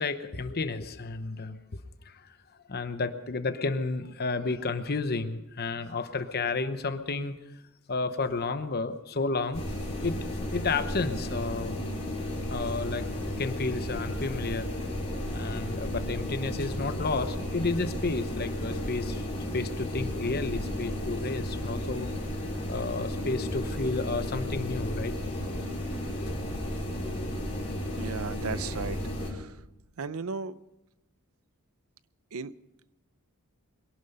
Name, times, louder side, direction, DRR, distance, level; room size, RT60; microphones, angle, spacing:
voice 1, 0.0-2.4 2.7-7.4 7.9-9.6 10.0-10.2 10.5-11.8 12.5-14.7 15.3-22.1 22.6-25.1 26.2-26.5, left 3 dB, 45° left, 0.9 m, -32 dB
sound 1, 9.5-29.3, left 1 dB, 30° left, 4.2 m, -33 dB
voice 2, 28.0-29.0 29.3-29.5 30.0-30.5 32.3-32.5, right 5 dB, 70° right, 0.6 m, -35 dB
22.5 x 11.5 x 5.4 m
head